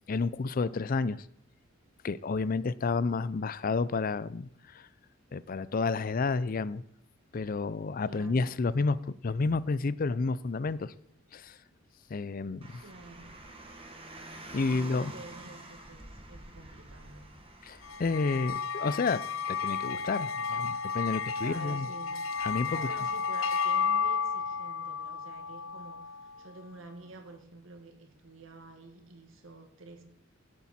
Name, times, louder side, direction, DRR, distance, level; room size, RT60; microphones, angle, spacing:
voice 1, 0.1-1.2 2.0-4.8 5.3-6.8 7.3-10.9 11.3-11.6 12.1-12.8 14.5-15.1 17.6-19.2 19.5-21.9 22.4-22.9, left 4 dB, 45° left, 17 dB, 0.5 m, -30 dB
voice 2, 8.1-8.6 12.8-13.4 14.7-17.3 21.4-22.1 22.6-30.0, right 2 dB, 75° right, 6 dB, 1.7 m, -49 dB
Car, 12.6-18.5, right 2 dB, 30° right, 1.6 m, -48 dB
sound 1, 17.8-26.5, left 6 dB, 85° left, 0.7 m, -32 dB
17.0 x 8.4 x 4.3 m, 0.71 s
head